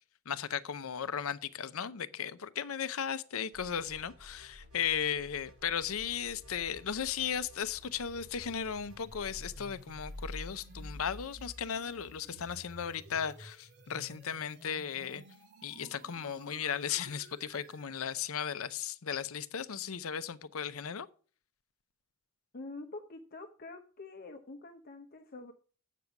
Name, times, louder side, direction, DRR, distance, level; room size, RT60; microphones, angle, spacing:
voice 1, 0.3-15.2 15.6-21.1, left 8 dB, 70° left, 0.6 m, -36 dB
sound 1, 3.5-9.5, left 1 dB, 75° right, 5.3 m, -56 dB
futuristic riser, 5.7-17.9, equal, 55° right, 2.8 m, -50 dB
voice 2, 22.5-25.5, left 2 dB, 45° left, 0.8 m, -46 dB
8.3 x 6.7 x 5.8 m
head